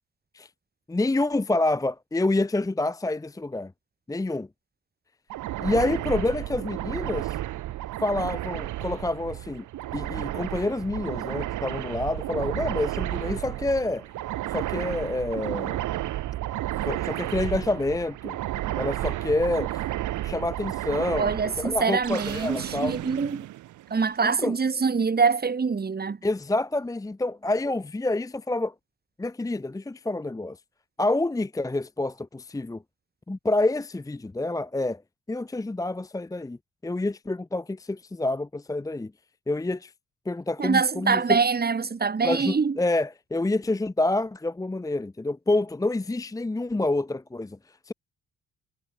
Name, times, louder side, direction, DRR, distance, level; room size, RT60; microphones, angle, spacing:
voice 1, 0.9-3.7 4.1-4.5 5.6-7.4 8.0-9.6 9.9-14.0 14.5-15.8 16.8-18.4 18.8-19.8 20.2-23.0 24.2-24.6 26.2-28.7 29.2-30.6 31.0-32.8 33.3-35.0 35.3-36.6 36.8-39.1 39.5-39.9 40.3-41.2 42.2-47.6 47.9-48.0, left 2 dB, 10° left, 0.8 m, -27 dB
sound 1, 5.3-24.2, right 15 dB, 75° right, 1.1 m, -32 dB
voice 2, 21.2-23.5 23.9-26.2 40.6-42.8, right 5 dB, 30° right, 3.3 m, -24 dB
cardioid pair, 90°, 30 cm